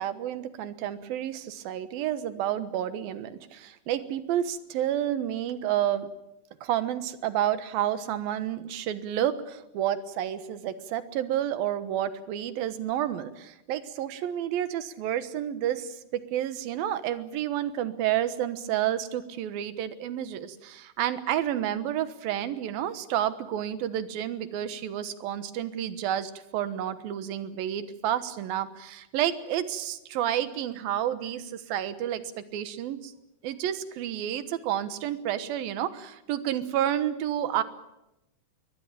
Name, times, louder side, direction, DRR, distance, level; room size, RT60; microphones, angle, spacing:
voice 1, 0.0-6.1 6.6-32.2 32.5-33.1 33.4-37.6, right 11 dB, 75° right, 12 dB, 2.9 m, -30 dB
22.5 x 19.0 x 9.0 m, 0.89 s
omnidirectional pair, 4.5 m